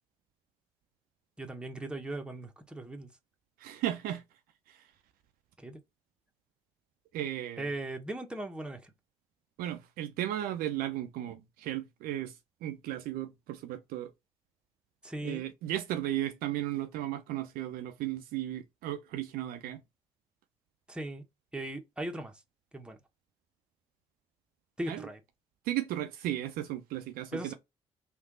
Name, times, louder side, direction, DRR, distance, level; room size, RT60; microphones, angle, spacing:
voice 1, 1.4-3.1 5.6-5.8 7.6-8.9 15.0-15.4 20.9-21.2 21.5-22.3 22.7-23.0 24.8-25.2 27.3-27.5, right 1 dB, 5° right, 0.9 m, -38 dB
voice 2, 3.6-4.2 4.7-4.8 7.1-7.7 9.6-12.4 12.6-14.1 15.2-19.8 24.9-25.1 25.7-27.5, right 13 dB, 60° right, 0.5 m, -35 dB
3.2 x 2.8 x 2.5 m
figure-of-eight pair, 45°, 17 cm